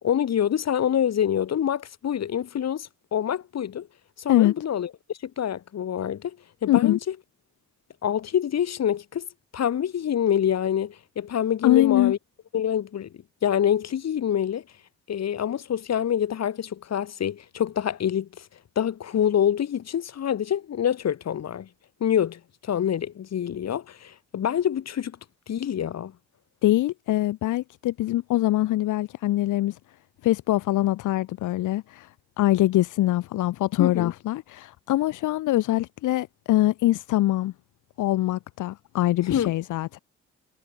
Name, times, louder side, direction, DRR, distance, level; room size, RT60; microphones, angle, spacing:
voice 1, 0.0-3.9 4.2-6.4 6.6-7.1 8.0-9.3 9.5-12.2 12.5-13.1 13.4-14.6 15.1-18.5 18.8-21.7 22.0-25.2 25.5-26.1 33.8-34.1 39.3-39.5, left 9 dB, 60° left, 3.7 m, -26 dB
voice 2, 6.7-7.0 11.6-12.1 26.6-29.8 30.2-37.5 38.0-40.0, left 15 dB, 80° left, 1.4 m, -23 dB
cardioid pair, 90°, 30 cm